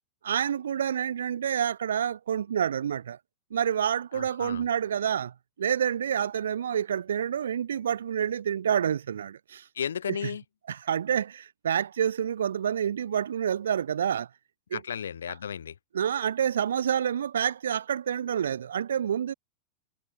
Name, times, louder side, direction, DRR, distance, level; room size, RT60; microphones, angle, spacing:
voice 1, 0.2-3.2 3.5-9.6 10.1-10.2 10.7-14.3 14.7-14.8 15.9-19.3, right 9 dB, 65° right, 0.7 m, -28 dB
voice 2, 4.1-4.6 9.7-10.4 14.7-15.7, left 8 dB, 65° left, 1.3 m, -34 dB
figure-of-eight pair, 90°, 0 cm